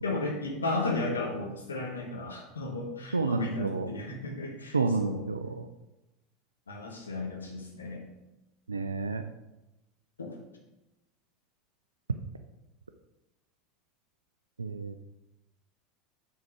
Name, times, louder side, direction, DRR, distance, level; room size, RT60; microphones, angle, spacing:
voice 1, 0.0-5.3 6.7-8.1 10.2-10.4, left 2 dB, 80° left, 0 dB, 1.7 m, -34 dB
voice 2, 3.1-3.9 4.7-5.7 8.7-9.2 14.6-15.0, right 4 dB, 85° right, 8 dB, 0.4 m, -30 dB
7.2 x 4.7 x 5.8 m, 0.97 s
figure-of-eight pair, 80°, 0 cm